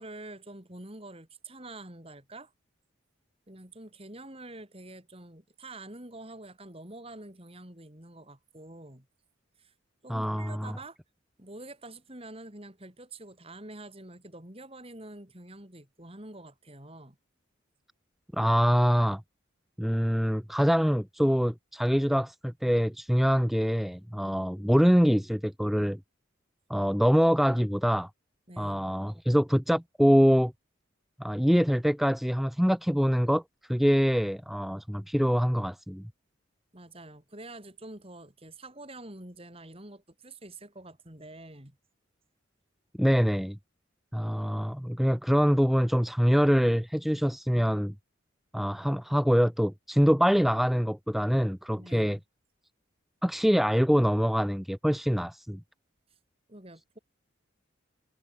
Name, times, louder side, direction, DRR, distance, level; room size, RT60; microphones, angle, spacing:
voice 1, 0.0-2.5 3.5-9.1 9.6-9.7 10.0-11.0 11.4-17.2 28.5-28.9 36.7-41.8 51.8-52.2 56.5-57.0, right 2 dB, 30° right, 3.6 m, -46 dB
voice 2, 10.1-10.7 18.3-19.2 19.8-26.0 26.7-28.1 28.6-30.5 31.2-33.4 33.7-36.0 43.0-43.6 44.1-47.9 48.5-52.2 53.2-55.6, equal, ahead, 0.5 m, -24 dB
head